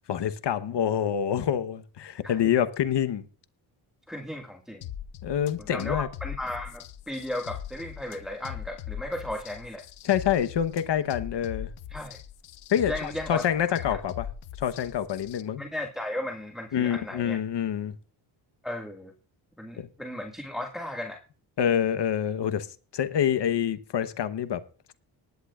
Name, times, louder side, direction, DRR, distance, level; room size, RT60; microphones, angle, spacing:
voice 1, 0.1-3.2 5.2-6.1 10.0-11.7 12.7-14.3 14.6-15.6 16.7-17.9 19.8-19.9 21.6-22.7 22.9-24.6, left 9 dB, 60° left, 1.1 m, -26 dB
voice 2, 4.1-4.8 5.6-9.8 11.9-12.2 12.9-13.5 13.9-14.0 15.6-17.4 18.6-19.1 19.6-21.2, left 1 dB, ahead, 1.9 m, -35 dB
sound 1, 4.8-15.4, left 10 dB, 85° left, 1.1 m, -40 dB
19.5 x 10.5 x 2.4 m
cardioid pair, 70°, 49 cm